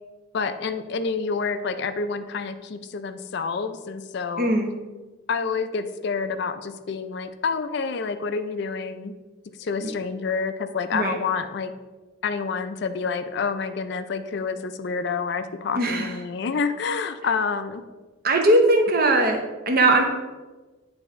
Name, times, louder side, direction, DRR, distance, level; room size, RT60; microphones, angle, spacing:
voice 1, 0.3-4.5 5.3-9.1 9.6-11.7 12.2-17.8, left 5 dB, 55° left, 10 dB, 0.4 m, -28 dB
voice 2, 4.4-4.7 9.8-9.9 10.9-11.2 15.8-16.1 18.2-20.0, right 2 dB, 45° right, 3 dB, 0.8 m, -20 dB
9.0 x 3.4 x 3.5 m, 1.2 s
head